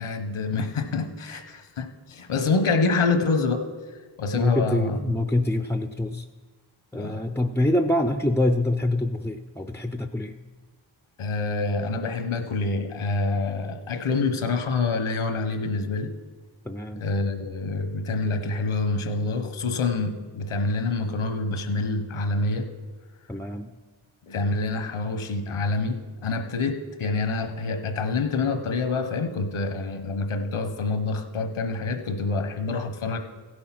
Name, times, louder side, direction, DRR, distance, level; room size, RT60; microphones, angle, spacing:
voice 1, 0.0-3.7 4.2-5.0 6.9-7.2 11.2-16.1 17.0-22.7 24.3-33.2, left 3 dB, 90° left, 8 dB, 1.1 m, -26 dB
voice 2, 4.3-6.2 6.9-10.3 16.7-17.0 23.3-23.7, left 1 dB, 5° left, 8 dB, 0.4 m, -25 dB
15.5 x 6.4 x 5.9 m, 1.4 s
wide cardioid pair, 65°, 48 cm